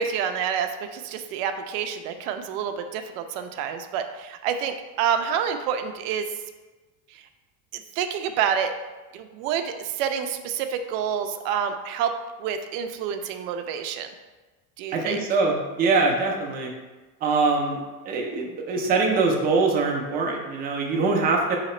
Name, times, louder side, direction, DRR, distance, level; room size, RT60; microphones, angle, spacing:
voice 1, 0.0-6.2 7.7-8.7 9.1-12.1 12.4-14.1 14.8-15.2, right 8 dB, 85° right, 7 dB, 0.5 m, -28 dB
voice 2, 14.9-16.7 17.2-17.8 18.1-21.6, right 3 dB, 25° right, 0 dB, 0.5 m, -23 dB
4.0 x 2.9 x 4.2 m, 1.2 s
cardioid pair, 165°, 36 cm